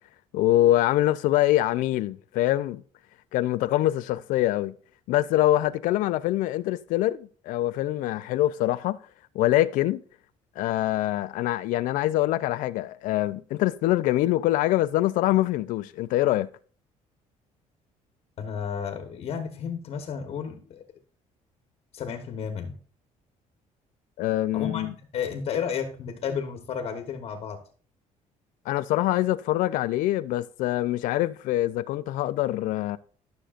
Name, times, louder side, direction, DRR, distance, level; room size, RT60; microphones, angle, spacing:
voice 1, 0.3-2.8 3.3-4.7 5.1-9.0 9.3-10.0 10.6-16.5 24.2-24.9 28.7-33.0, left 15 dB, 85° left, 0.4 m, -24 dB
voice 2, 18.4-20.8 21.9-22.8 24.5-27.6, left 7 dB, 50° left, 1.2 m, -32 dB
12.5 x 6.5 x 2.5 m
cardioid pair, 155°, 13 cm